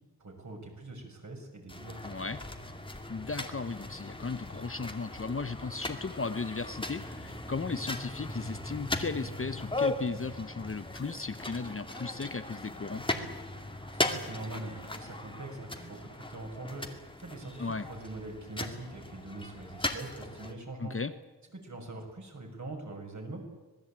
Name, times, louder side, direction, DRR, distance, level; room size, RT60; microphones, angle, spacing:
voice 1, 0.2-2.4 13.8-21.0 21.5-23.4, right 2 dB, 45° right, 2 dB, 6.5 m, -43 dB
sound 1, 1.7-20.5, left 2 dB, 10° left, 2.3 m, -38 dB
voice 2, 2.0-2.4 3.1-13.0 17.6-17.9 20.8-21.1, left 4 dB, 30° left, 11 dB, 1.0 m, -36 dB
26.5 x 19.5 x 8.9 m, 1.2 s
wide cardioid pair, 140°, 41 cm